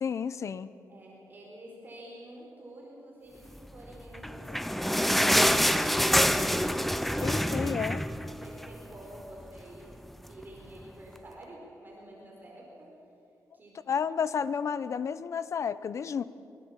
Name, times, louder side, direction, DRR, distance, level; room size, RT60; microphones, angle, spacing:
voice 1, 0.0-0.7 7.2-8.1 13.9-16.2, left 7 dB, 50° left, 15 dB, 0.8 m, -31 dB
voice 2, 0.9-6.2 7.0-7.8 8.2-9.9 10.3-12.9 13.5-13.9, right 1 dB, 30° right, -2 dB, 4.6 m, -49 dB
sound 1, 4.1-8.8 9.2-9.3 9.6-9.8 10.4-10.5, equal, ahead, 0.7 m, -26 dB
25.5 x 23.0 x 7.3 m, 2.6 s
wide cardioid pair, 160°, 6 cm